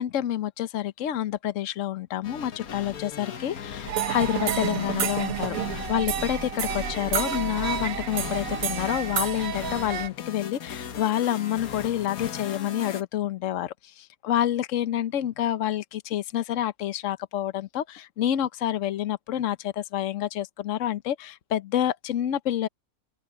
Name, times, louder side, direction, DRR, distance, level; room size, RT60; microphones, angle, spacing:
voice 1, 0.0-5.6 5.9-22.7, left 11 dB, 65° left, 1.1 m, -28 dB
sound 1, 2.2-13.0, left 8 dB, 80° left, 1.7 m, -38 dB
sound 2, 3.9-10.1, right 9 dB, 70° right, 1.3 m, -30 dB
open air
omnidirectional pair, 1.5 m